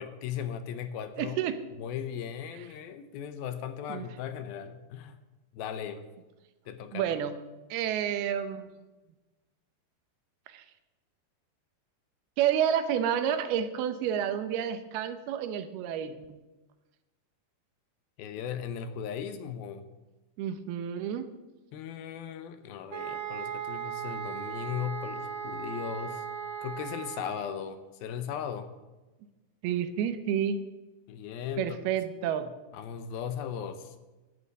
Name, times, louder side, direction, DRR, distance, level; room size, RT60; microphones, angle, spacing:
voice 1, 0.0-1.5 1.8-5.2 5.5-6.1 6.7-7.1 18.2-19.9 21.7-26.2 26.6-28.7 31.1-31.8 32.7-34.0, left 8 dB, 75° left, 10 dB, 2.5 m, -37 dB
voice 2, 1.2-1.6 3.9-4.0 6.9-7.3 7.7-8.7 10.5-10.6 12.4-16.4 20.4-21.3 29.6-30.6 31.6-32.5, right 9 dB, 80° right, 10 dB, 2.7 m, -30 dB
sound 1, 22.9-27.6, right 7 dB, 65° right, 1.6 m, -37 dB
11.0 x 8.8 x 9.3 m, 1.1 s
omnidirectional pair, 4.6 m